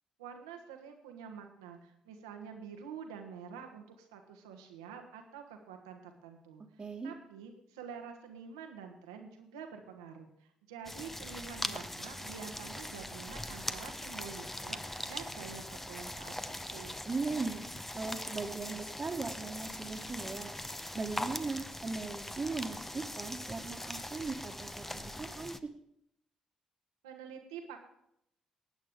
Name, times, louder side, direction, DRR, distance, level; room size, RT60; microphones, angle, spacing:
voice 1, 0.2-16.3 16.7-17.0 27.0-27.8, right 6 dB, 80° right, 4 dB, 1.3 m, -47 dB
voice 2, 6.8-7.1 17.0-17.7 17.9-20.6 20.9-25.5, right 4 dB, 35° right, -2 dB, 1.5 m, -38 dB
sound 1, 10.8-25.6, left 1 dB, 10° left, 0.7 m, -41 dB
19.0 x 8.9 x 3.7 m, 0.75 s
figure-of-eight pair, 40°, 3 cm